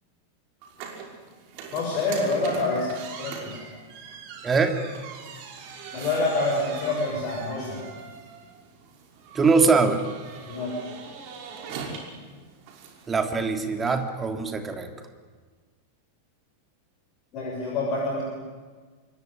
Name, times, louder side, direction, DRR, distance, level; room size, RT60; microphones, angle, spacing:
sound 1, 0.6-14.0, right 5 dB, 45° right, 5.9 m, -41 dB
voice 1, 1.7-3.6 5.9-7.8 10.5-10.7 17.3-18.2, left 2 dB, 40° left, -1 dB, 6.5 m, -27 dB
voice 2, 4.4-4.8 9.3-10.0 13.1-14.9, right 4 dB, 15° right, 6 dB, 3.1 m, -22 dB
26.5 x 22.5 x 10.0 m, 1.4 s
figure-of-eight pair, 90°, 0 cm